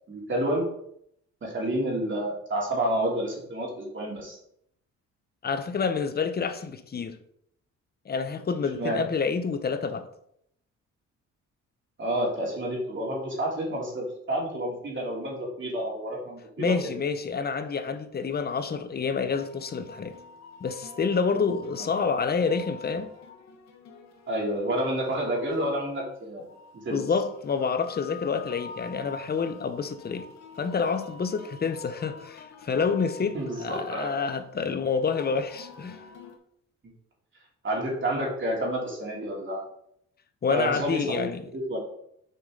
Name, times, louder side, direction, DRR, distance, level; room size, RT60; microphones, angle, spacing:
voice 1, 0.1-0.6 1.4-4.4 8.7-9.0 12.0-16.7 21.8-21.9 24.3-26.5 26.7-27.0 33.3-34.1 37.6-39.6 40.5-41.3 41.5-41.8, right 1 dB, 40° right, 2.9 m, -29 dB
voice 2, 5.4-7.2 8.1-10.1 16.6-20.2 20.6-23.1 26.9-30.3 30.6-36.0 40.4-41.4, left 5 dB, 35° left, 0.8 m, -28 dB
sound 1, 19.3-36.4, left 5 dB, 65° left, 1.1 m, -47 dB
6.8 x 5.0 x 3.8 m
cardioid pair, 90°, 30 cm